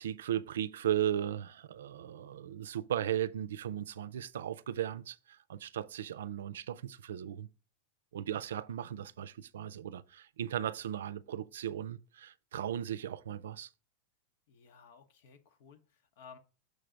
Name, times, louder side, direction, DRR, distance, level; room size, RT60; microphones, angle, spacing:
voice 1, 0.0-7.5 8.1-13.7, right 10 dB, 90° right, 0.4 m, -36 dB
voice 2, 14.5-16.4, left 6 dB, 70° left, 1.0 m, -56 dB
6.4 x 3.3 x 5.1 m
supercardioid pair, 130°, 0 cm